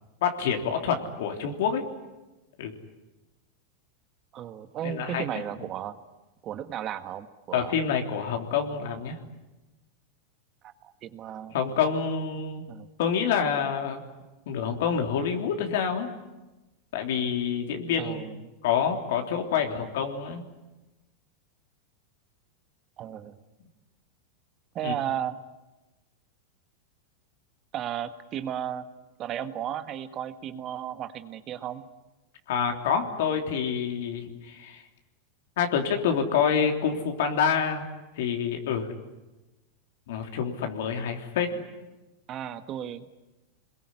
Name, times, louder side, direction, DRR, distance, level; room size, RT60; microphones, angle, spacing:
voice 1, 0.2-1.8 2.6-2.7 4.8-5.2 7.5-9.2 11.5-12.6 13.0-14.0 14.5-16.1 16.9-18.3 18.6-20.4 24.8-24.9 32.5-34.8 35.6-37.8 38.2-38.9 40.1-41.5, left 7 dB, 70° left, 3 dB, 3.5 m, -27 dB
voice 2, 4.3-6.0 6.4-7.7 10.6-11.6 12.7-12.9 18.0-18.5 23.0-23.4 24.7-25.4 27.7-28.9 29.2-31.8 42.3-43.1, right 10 dB, 35° right, 9 dB, 1.6 m, -34 dB
27.5 x 21.5 x 9.9 m, 1.1 s
supercardioid pair, 140°, 0 cm